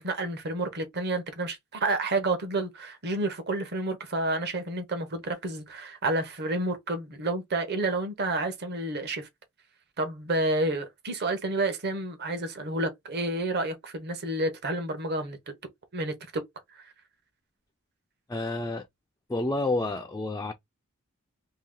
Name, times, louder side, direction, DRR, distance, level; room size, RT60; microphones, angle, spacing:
voice 1, 0.0-9.3 10.0-15.5 15.9-16.5 16.7-16.9, right 2 dB, 50° right, 0.9 m, -30 dB
voice 2, 18.3-18.9 19.3-20.5, left 2 dB, 15° left, 0.3 m, -29 dB
2.9 x 2.8 x 3.6 m
head